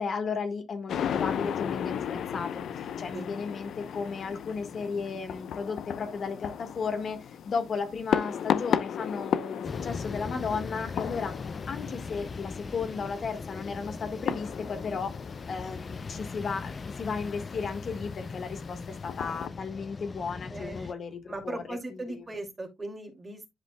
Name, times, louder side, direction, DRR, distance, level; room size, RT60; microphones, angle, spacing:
voice 1, 0.0-11.3 11.6-15.1 15.5-22.2, left 5 dB, 50° left, 1.5 m, -34 dB
sound 1, 0.9-19.5, left 9 dB, 70° left, 0.7 m, -35 dB
sound 2, 9.6-20.9, left 4 dB, 35° left, 0.4 m, -39 dB
voice 2, 20.5-20.9 21.3-23.5, right 2 dB, 25° right, 2.4 m, -38 dB
11.0 x 5.1 x 2.2 m
cardioid pair, 90°, 0 cm